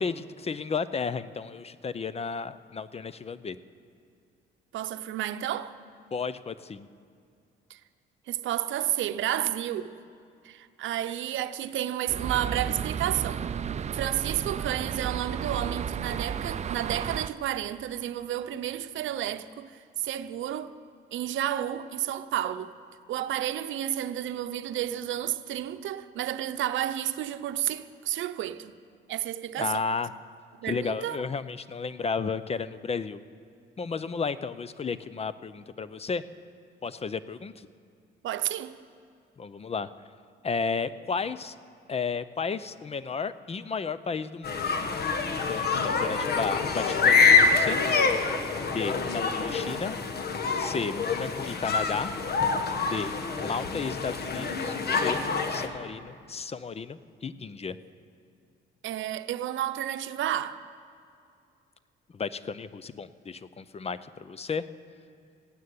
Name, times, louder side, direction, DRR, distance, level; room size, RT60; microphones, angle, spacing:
voice 1, 0.0-3.6 6.1-6.9 29.6-30.1 30.6-33.2 33.8-36.2 36.8-37.5 39.4-39.9 40.4-41.5 41.9-44.7 45.5-47.8 48.6-50.0 50.6-52.1 52.9-53.1 53.4-55.2 55.5-57.8 62.1-64.6, left 5 dB, 30° left, 0.6 m, -33 dB
voice 2, 4.7-5.8 7.7-7.8 8.3-10.0 10.4-13.4 13.9-20.7 21.1-22.7 23.1-28.7 29.1-29.8 30.6-31.2 38.2-38.8 58.8-60.6, right 12 dB, 75° right, 0.7 m, -31 dB
sound 1, 12.1-17.3, right 7 dB, 35° right, 0.4 m, -33 dB
sound 2, 44.4-55.7, left 4 dB, 55° left, 1.4 m, -26 dB
15.5 x 9.5 x 9.4 m
cardioid pair, 90°, 20 cm